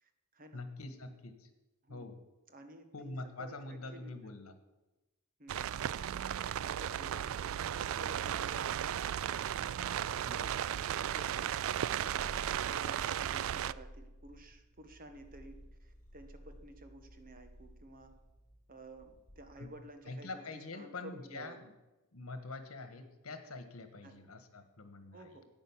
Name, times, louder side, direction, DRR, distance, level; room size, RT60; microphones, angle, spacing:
voice 1, 0.0-0.6 1.8-2.1 2.5-4.3 5.4-5.8 6.6-8.9 9.6-12.4 12.6-18.1 18.7-21.6 24.0-24.1 25.1-25.5, right 1 dB, 40° right, 7 dB, 1.4 m, -53 dB
voice 2, 0.5-1.5 1.9-2.2 2.9-4.5 10.2-10.6 19.6-19.7 20.1-21.6 22.1-25.3, left 2 dB, 80° left, 9 dB, 1.5 m, -45 dB
sound 1, 5.5-13.7, right 10 dB, 65° right, 0.3 m, -35 dB
Purr, 11.9-19.9, equal, 40° left, 3.1 m, -54 dB
10.5 x 8.8 x 7.3 m, 1.0 s
head